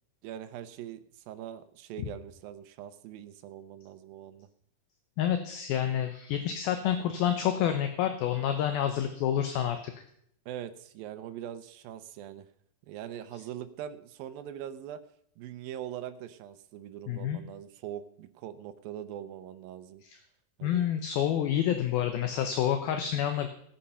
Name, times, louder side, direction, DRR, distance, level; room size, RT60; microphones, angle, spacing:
voice 1, 0.2-4.5 10.5-12.5 12.9-15.0 15.4-20.0 20.6-20.9, right 11 dB, 80° right, 10 dB, 2.1 m, -42 dB
voice 2, 5.2-9.9 17.1-17.4 20.1-20.2 20.6-23.5, left 10 dB, 75° left, 7 dB, 2.5 m, -28 dB
17.5 x 8.6 x 5.6 m, 0.69 s
omnidirectional pair, 5.0 m